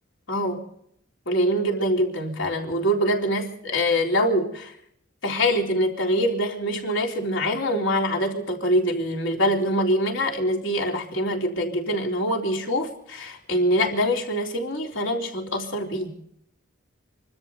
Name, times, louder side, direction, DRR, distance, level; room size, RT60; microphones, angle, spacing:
voice 1, 0.3-0.6 1.3-4.7 5.2-16.1, equal, 65° left, 1 dB, 3.6 m, -24 dB
27.0 x 13.0 x 4.0 m, 0.69 s
head